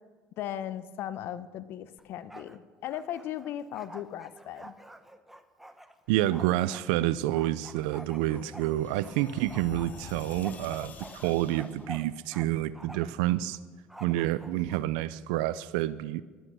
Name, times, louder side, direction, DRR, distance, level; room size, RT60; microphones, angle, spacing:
voice 1, 0.4-4.7, left 11 dB, 65° left, 0.7 m, -37 dB
Bark, 2.0-2.6 2.8-6.9 7.4-9.2 9.5-12.5 12.7-13.2 13.9-14.8, right 1 dB, 5° right, 1.0 m, -48 dB
voice 2, 6.1-10.9 11.2-13.6 14.0-16.2, right 14 dB, 85° right, 0.4 m, -28 dB
sound 1, 7.3-11.9, left 4 dB, 45° left, 1.8 m, -47 dB
15.5 x 11.0 x 6.2 m
supercardioid pair, 95°, 4 cm